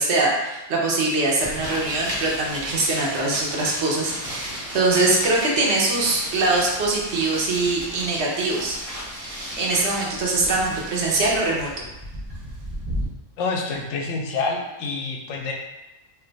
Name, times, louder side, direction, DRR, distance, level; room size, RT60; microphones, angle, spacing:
voice 1, 0.0-8.8 9.1-11.8, right 2 dB, 65° right, -2 dB, 0.9 m, -23 dB
sound 1, 1.4-13.1, equal, 30° right, 0.8 m, -34 dB
voice 2, 13.4-15.5, left 4 dB, 85° left, 1 dB, 0.9 m, -27 dB
2.6 x 2.1 x 3.8 m, 1.0 s
omnidirectional pair, 1.3 m